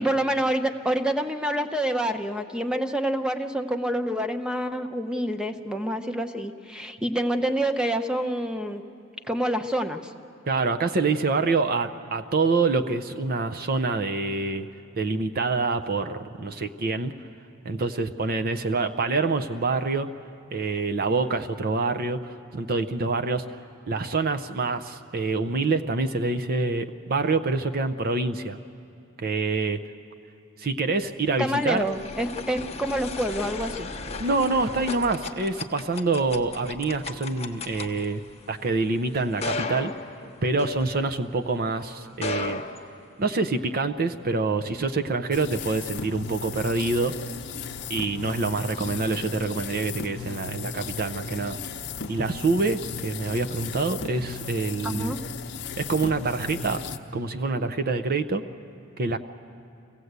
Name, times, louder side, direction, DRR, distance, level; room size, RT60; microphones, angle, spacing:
voice 1, 0.0-8.8 9.2-10.1 31.4-33.9 54.8-55.2, right 1 dB, 5° right, 7 dB, 0.8 m, -27 dB
voice 2, 10.4-14.7 15.0-17.1 17.6-20.1 20.5-23.4 23.9-28.6 29.2-29.8 30.6-31.8 34.2-38.2 38.5-39.9 40.4-42.6 43.2-47.2 47.9-51.6 52.1-55.1 55.8-58.4 59.0-59.2, right 3 dB, 45° right, 8 dB, 0.6 m, -26 dB
sound 1, 31.1-41.5 42.1-43.6, left 3 dB, 30° left, 1.0 m, -36 dB
sound 2, 45.3-57.0, left 5 dB, 55° left, 0.8 m, -36 dB
25.0 x 16.5 x 8.1 m, 2.6 s
head